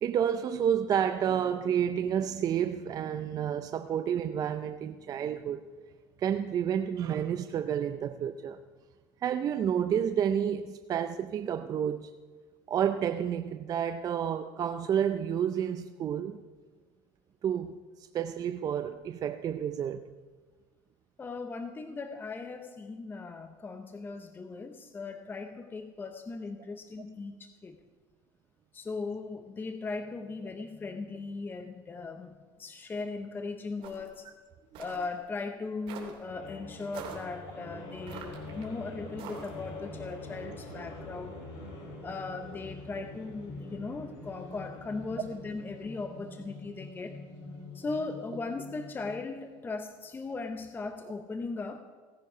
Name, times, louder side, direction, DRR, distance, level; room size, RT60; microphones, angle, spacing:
voice 1, 0.0-5.6 6.2-8.6 9.2-12.1 12.7-16.4 17.4-20.1, right 9 dB, 35° right, 9 dB, 0.5 m, -30 dB
voice 2, 21.2-27.8 28.7-34.3 34.8-41.4 42.0-47.2 47.7-51.8, left 3 dB, 20° left, 8 dB, 0.7 m, -38 dB
sound 1, 33.8-34.2 34.7-35.1 35.9-36.2 36.9-37.3 38.1-38.6 39.2-39.7, right 6 dB, 60° right, 3.0 m, -44 dB
sound 2, 36.2-49.4, left 2 dB, 65° left, 4.9 m, -45 dB
17.0 x 9.8 x 5.6 m, 1.4 s
supercardioid pair, 115°, 11 cm